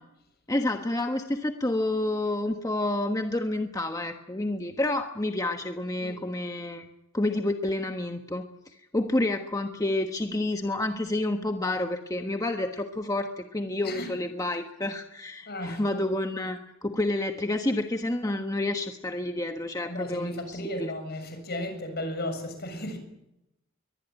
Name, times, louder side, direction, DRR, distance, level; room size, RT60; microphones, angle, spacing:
voice 1, 0.5-6.9 7.1-8.4 8.7-20.9, left 1 dB, 15° left, 5 dB, 1.2 m, -29 dB
voice 2, 15.5-15.8 19.8-23.0, left 1 dB, 50° left, 7 dB, 7.1 m, -34 dB
23.0 x 20.0 x 9.2 m, 0.86 s
head